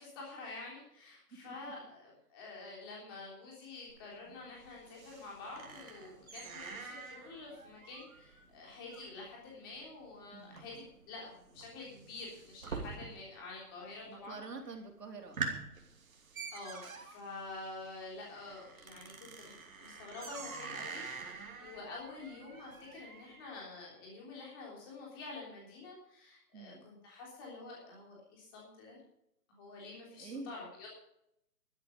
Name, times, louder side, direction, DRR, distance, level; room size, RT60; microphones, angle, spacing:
voice 1, 0.0-14.4 16.5-29.0 29.5-30.9, left 3 dB, 15° left, -3 dB, 3.4 m, -48 dB
sound 1, 3.9-13.5 13.7-14.3 14.7-14.8 15.1-23.5, right 4 dB, 60° right, 2.9 m, -46 dB
voice 2, 10.3-10.8 14.0-15.6 26.5-26.9 30.2-30.5, right 3 dB, 85° right, 2 dB, 4.2 m, -47 dB
12.5 x 12.0 x 5.3 m, 0.76 s
hypercardioid pair, 180°, 47 cm